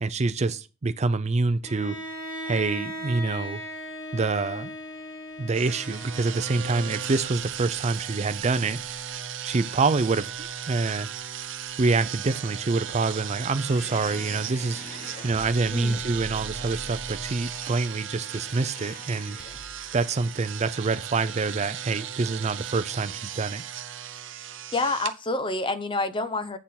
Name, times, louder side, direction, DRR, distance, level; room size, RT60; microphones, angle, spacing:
voice 1, 0.0-2.0 2.5-3.6 4.1-4.7 5.4-9.1 9.4-11.1 11.8-19.4 19.9-23.6, right 3 dB, 35° right, 0.5 m, -26 dB
Bowed string instrument, 1.6-6.7, equal, 80° left, 1.5 m, -37 dB
sound 1, 5.5-25.1, right 8 dB, 75° right, 0.7 m, -36 dB
sound 2, 13.5-20.0, left 1 dB, 45° left, 1.1 m, -44 dB
voice 2, 24.7-26.6, left 2 dB, 25° left, 0.8 m, -28 dB
8.4 x 4.4 x 5.8 m
head